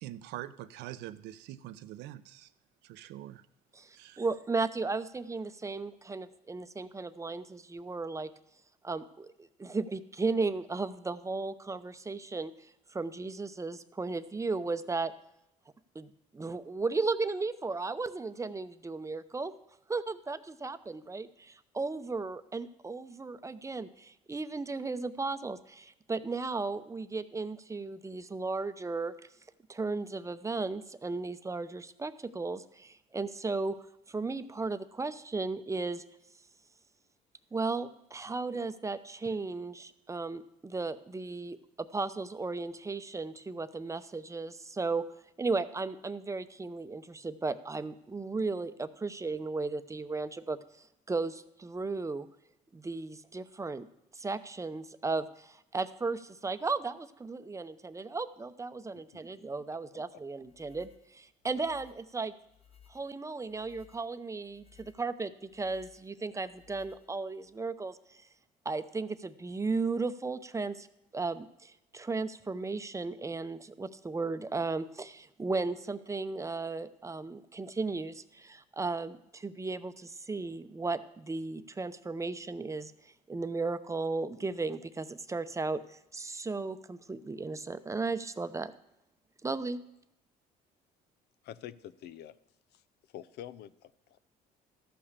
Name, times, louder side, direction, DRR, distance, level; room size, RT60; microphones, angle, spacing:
voice 1, 0.0-2.5 2.8-3.4 3.9-4.2, right 13 dB, 80° right, 13 dB, 0.6 m, -44 dB
voice 2, 3.7-8.3 8.8-12.5 12.9-15.1 15.9-19.5 19.9-29.1 29.7-33.7 34.1-36.0 37.5-45.0 45.4-50.6 51.1-52.3 52.7-53.9 54.1-62.3 62.9-68.2 68.6-70.9 71.1-88.7 89.4-89.8, right 3 dB, 15° right, 12 dB, 0.7 m, -35 dB
sound 1, 60.4-67.5, left 9 dB, 35° left, 0.9 m, -62 dB
voice 3, 91.4-92.4 92.7-92.8 93.1-94.2, left 11 dB, 70° left, 15 dB, 0.6 m, -47 dB
13.5 x 5.6 x 6.7 m, 0.83 s
supercardioid pair, 80°, 17 cm